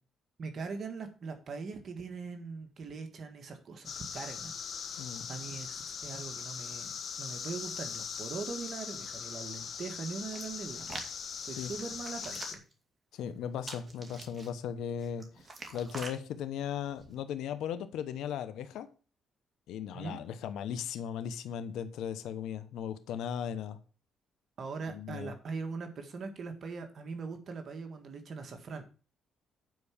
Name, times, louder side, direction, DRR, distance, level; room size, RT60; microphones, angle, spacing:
voice 1, 0.4-4.6 4.8-5.0 5.3-11.0 11.4-12.6 19.9-20.2 24.6-28.8, right 4 dB, 55° right, 6 dB, 1.6 m, -41 dB
sound 1, 3.8-12.5, left 6 dB, 55° left, 1.3 m, -40 dB
voice 2, 5.0-5.3 11.5-11.7 13.1-15.5 15.7-18.9 19.7-23.8 24.9-25.3, left 8 dB, 85° left, 11 dB, 0.9 m, -37 dB
Hands, 10.3-11.1 11.7-12.7 13.6-14.5 15.0-16.2 16.9-17.1, right 2 dB, 30° right, 2.5 m, -45 dB
9.4 x 4.8 x 7.1 m, 0.36 s
cardioid pair, 90°, 0 cm